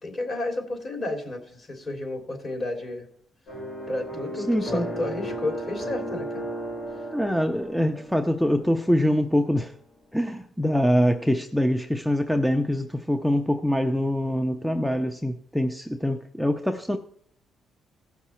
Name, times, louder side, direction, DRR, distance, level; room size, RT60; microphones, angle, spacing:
voice 1, 0.0-3.1 3.9-6.5, left 2 dB, 40° left, 2.9 m, -31 dB
sound 1, 3.5-8.7, right 1 dB, 70° left, 4.9 m, -35 dB
voice 2, 4.5-4.9 7.1-9.7 10.1-17.0, equal, 5° left, 0.6 m, -24 dB
16.0 x 5.9 x 4.3 m
cardioid pair, 90°, 0 cm